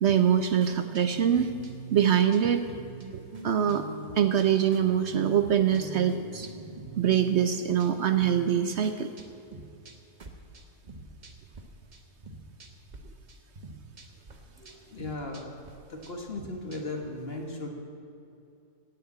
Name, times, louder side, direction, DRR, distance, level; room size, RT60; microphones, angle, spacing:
voice 1, 0.0-1.5 1.9-2.6 3.1-3.9 4.2-6.5 7.0-9.1, right 9 dB, 65° right, 9 dB, 0.7 m, -24 dB
sound 1, 0.6-11.6 11.9-13.0 13.3-17.1, right 2 dB, 35° right, 1.0 m, -45 dB
voice 2, 14.6-15.5 15.9-17.7, left 2 dB, 40° left, 2 dB, 1.6 m, -37 dB
16.5 x 6.8 x 8.7 m, 2.7 s
omnidirectional pair, 1.7 m